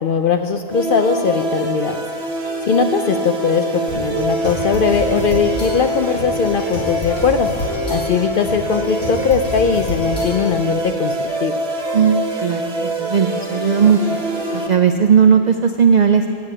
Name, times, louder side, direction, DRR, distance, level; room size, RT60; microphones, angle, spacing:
voice 1, 0.0-2.1 2.6-7.5 7.9-11.2 11.4-11.6, left 6 dB, 60° left, 6 dB, 0.6 m, -19 dB
sound 1, 0.7-14.7, right 1 dB, 55° right, 1.4 m, -24 dB
sound 2, 3.9-10.7, left 1 dB, 85° left, 3.0 m, -29 dB
voice 2, 11.9-14.0 14.5-16.3, right 7 dB, 70° right, 6 dB, 0.4 m, -16 dB
9.7 x 8.1 x 8.7 m, 2.5 s
omnidirectional pair, 1.3 m